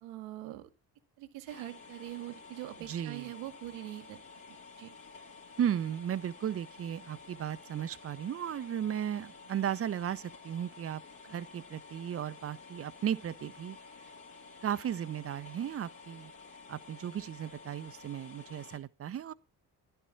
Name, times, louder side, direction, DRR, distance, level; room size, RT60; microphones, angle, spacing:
voice 1, 0.0-0.7 1.2-4.2 4.5-4.9, right 15 dB, 75° right, 1.0 m, -43 dB
sound 1, 1.5-18.8, left 4 dB, 65° left, 2.4 m, -52 dB
voice 2, 2.9-3.3 5.6-11.0 11.3-13.8 14.6-16.3 16.7-19.3, right 9 dB, 30° right, 0.5 m, -35 dB
11.0 x 4.4 x 7.2 m
hypercardioid pair, 45°, 46 cm